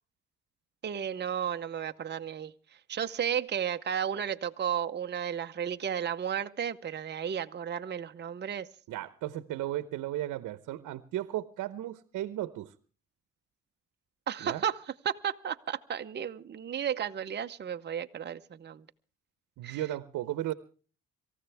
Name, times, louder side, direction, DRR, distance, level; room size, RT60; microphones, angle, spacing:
voice 1, 0.8-2.5 2.9-8.7 14.3-14.8 15.0-18.8 19.6-19.8, right 8 dB, 35° right, 0.8 m, -33 dB
voice 2, 8.9-12.7 14.4-14.6 19.6-20.5, right 14 dB, 80° right, 0.9 m, -35 dB
26.0 x 14.5 x 3.4 m
cardioid pair, 90°, 30 cm